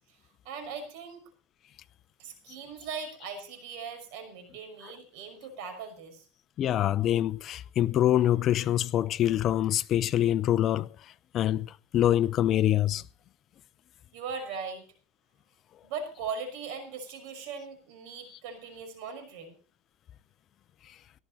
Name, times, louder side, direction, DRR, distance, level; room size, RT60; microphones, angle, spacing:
voice 1, 0.4-1.3 2.2-6.2 14.1-14.9 15.8-19.6, right 5 dB, 65° right, 5.6 m, -39 dB
voice 2, 6.6-10.9 11.3-13.0, left 12 dB, 40° left, 0.7 m, -25 dB
18.0 x 13.5 x 4.2 m
supercardioid pair, 130°, 0 cm